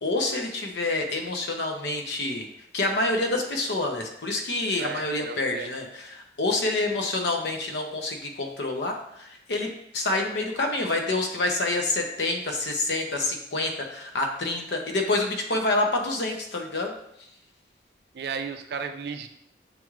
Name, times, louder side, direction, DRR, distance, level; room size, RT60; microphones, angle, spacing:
voice 1, 0.0-2.5 2.7-16.9, left 2 dB, 75° left, 3 dB, 0.7 m, -27 dB
voice 2, 4.8-5.7 18.1-19.3, right 6 dB, 60° right, 8 dB, 0.4 m, -34 dB
6.7 x 3.1 x 2.4 m, 0.75 s
head